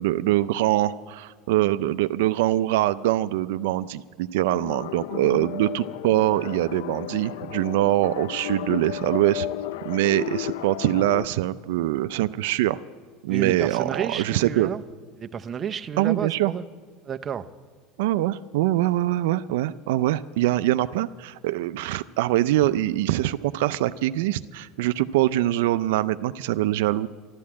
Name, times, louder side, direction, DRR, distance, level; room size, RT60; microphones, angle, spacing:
voice 1, 0.0-9.5 9.8-12.8 13.2-14.7 16.0-16.5 18.0-27.1, right 15 dB, 80° right, 13 dB, 0.4 m, -23 dB
sound 1, 4.5-11.3, left 13 dB, 85° left, 0.4 m, -33 dB
voice 2, 13.3-14.8 15.2-16.6 17.0-17.5, right 8 dB, 25° right, 9 dB, 0.6 m, -31 dB
12.5 x 12.5 x 8.5 m, 1.5 s
supercardioid pair, 140°, 0 cm